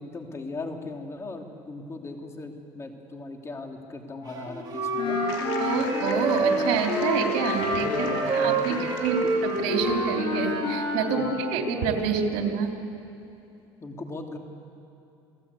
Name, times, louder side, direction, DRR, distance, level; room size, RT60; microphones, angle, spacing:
voice 1, 0.0-5.2 7.7-8.9 9.2-9.3 11.1-11.6 13.8-14.4, left 2 dB, 25° left, 3 dB, 3.1 m, -38 dB
Wind instrument woodwind instrument, 4.3-10.7, right 3 dB, 40° right, 4.4 m, -29 dB
Wind instrument woodwind instrument 2, 5.0-12.2, left 4 dB, 55° left, 6.4 m, -31 dB
sound 1, 5.3-10.0, left 6 dB, 80° left, 3.3 m, -38 dB
voice 2, 5.6-8.7 9.0-9.2 9.4-12.7, right 6 dB, 75° right, 2 dB, 3.4 m, -27 dB
29.0 x 17.5 x 8.5 m, 2.8 s
supercardioid pair, 105°, 11 cm